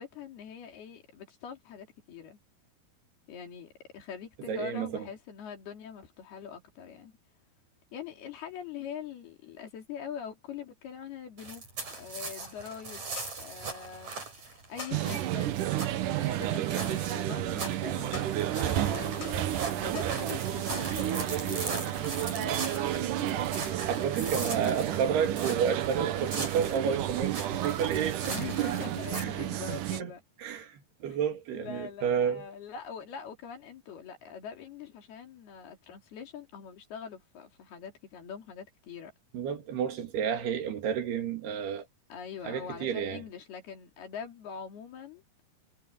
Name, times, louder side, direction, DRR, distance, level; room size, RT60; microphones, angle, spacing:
voice 1, 0.0-2.4 3.3-7.1 7.9-11.6 12.0-13.1 13.4-15.5 16.1-25.0 28.3-30.2 31.0-31.2 31.5-39.1 42.1-45.2, left 7 dB, 80° left, 5.1 m, -43 dB
voice 2, 4.5-5.1 23.9-30.1 30.4-32.5 39.3-41.9 42.4-43.2, right 7 dB, 85° right, 4.5 m, -31 dB
sound 1, 11.4-29.2, right 3 dB, 45° right, 8.3 m, -40 dB
sound 2, 11.9-23.2, left 5 dB, 60° left, 9.6 m, -52 dB
sound 3, 14.9-30.0, right 12 dB, 65° right, 2.3 m, -31 dB
omnidirectional pair, 4.5 m